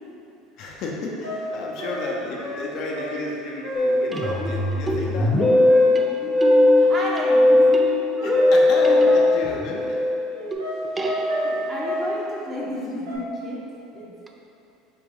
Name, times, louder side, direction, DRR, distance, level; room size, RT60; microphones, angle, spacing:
voice 1, 0.6-5.4 8.2-10.1, left 2 dB, 60° left, -3 dB, 0.8 m, -31 dB
sound 1, 0.9-1.0 1.2-3.3 3.6-4.0 4.2-4.6 5.7-6.7 8.3-9.5 10.6-12.2 13.1-13.2, equal, 80° right, 0.9 m, -31 dB
voice 2, 1.6-2.0 4.9-6.3 6.8-7.7 8.1-8.4 11.4-13.6 13.9-14.1, equal, 35° right, -5 dB, 1.1 m, -33 dB
sound 2, 2.3-2.7 4.1-10.0 10.5-11.9 14.3-14.4, right 2 dB, 20° right, 0.4 m, -32 dB
Musical instrument, 3.7-10.5, left 2 dB, 25° left, 1.0 m, -19 dB
5.0 x 2.9 x 3.7 m, 2.9 s
supercardioid pair, 95°, 0 cm